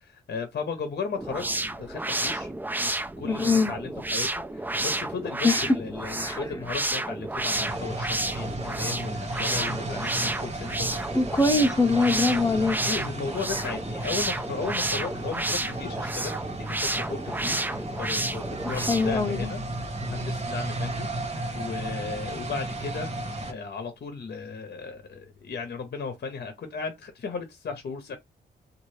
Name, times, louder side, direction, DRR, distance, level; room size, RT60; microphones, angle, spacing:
voice 1, 0.3-11.2 11.5-11.7 12.8-16.4 16.7-17.6 18.0-19.6 20.0-23.1 23.5-28.2, left 5 dB, 60° left, 0.8 m, -36 dB
sound 1, 1.2-19.2, right 2 dB, 10° right, 0.4 m, -31 dB
voice 2, 3.2-3.7 5.4-5.7 6.2-6.4 11.1-12.8 18.7-19.5, left 3 dB, 20° left, 0.8 m, -23 dB
sound 2, 7.5-23.5, right 2 dB, 35° right, 1.1 m, -34 dB
2.7 x 2.5 x 3.1 m
cardioid pair, 65°, 19 cm